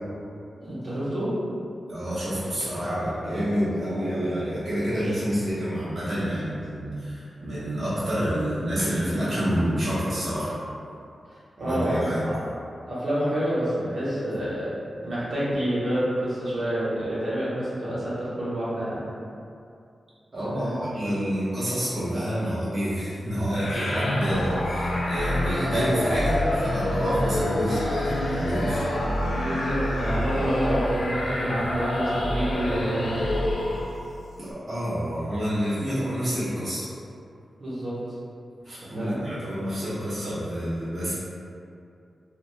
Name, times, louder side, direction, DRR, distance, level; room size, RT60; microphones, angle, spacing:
voice 1, 0.6-1.3 11.3-12.4 12.9-14.7 15.0-19.0 20.4-20.8 29.3-33.2 37.6-37.9 38.9-39.3, equal, 60° right, -11 dB, 1.1 m, -28 dB
voice 2, 1.9-10.5 11.6-12.2 20.3-28.9 34.4-36.8 38.6-41.1, equal, 40° right, -12 dB, 1.0 m, -28 dB
sound 1, 23.5-34.1, left 1 dB, 75° left, 0.5 m, -27 dB
4.8 x 2.1 x 2.3 m, 2.5 s
cardioid pair, 65°, 0 cm